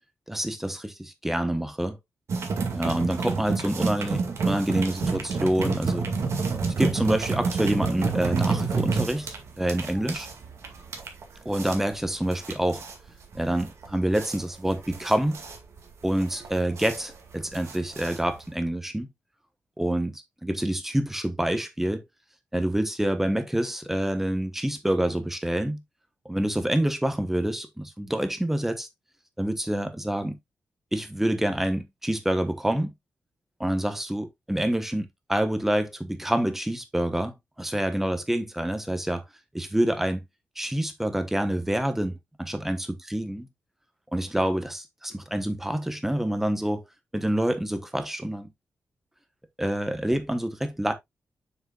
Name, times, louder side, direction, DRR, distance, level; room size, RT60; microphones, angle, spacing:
voice 1, 0.3-2.0 2.7-6.1 6.8-10.3 11.4-12.8 13.3-15.4 16.0-19.1 19.8-22.0 22.5-25.8 26.3-28.9 29.4-30.4 30.9-32.9 33.6-39.2 39.5-40.2 40.6-43.5 44.1-46.8 47.1-48.5 49.6-50.9, right 1 dB, 5° right, 1.1 m, -27 dB
sound 1, 2.3-18.6, right 4 dB, 60° right, 2.1 m, -29 dB
7.1 x 6.6 x 2.4 m
wide cardioid pair, 165°, 5 cm